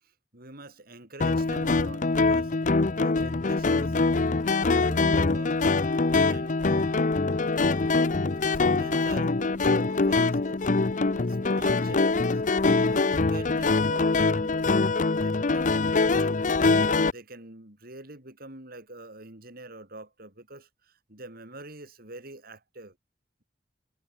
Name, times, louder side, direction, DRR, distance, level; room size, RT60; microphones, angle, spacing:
voice 1, 0.3-2.5 2.9-4.3 4.6-5.6 6.2-7.0 8.4-10.6 11.0-14.6 15.1-16.3 16.8-22.9, right 2 dB, 55° right, 6.7 m, -45 dB
sound 1, 1.2-17.1, left 3 dB, 45° left, 0.7 m, -24 dB
head